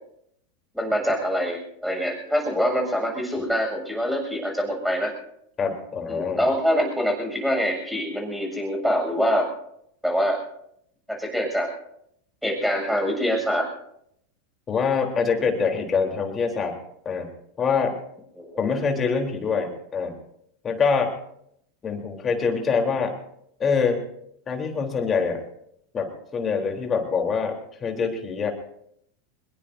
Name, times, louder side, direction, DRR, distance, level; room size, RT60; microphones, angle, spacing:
voice 1, 0.7-5.1 6.1-9.5 10.0-10.4 11.1-11.7 12.4-13.7 18.4-18.7, equal, ahead, 0 dB, 7.1 m, -25 dB
voice 2, 5.6-6.4 14.7-16.7 17.1-17.3 17.6-17.9 18.6-20.1 20.6-21.1 21.8-23.1 23.6-24.0 24.5-25.4 25.9-27.5 27.8-28.5, left 5 dB, 25° left, 2 dB, 3.7 m, -24 dB
24.5 x 21.5 x 2.8 m, 0.73 s
hypercardioid pair, 90°, 0 cm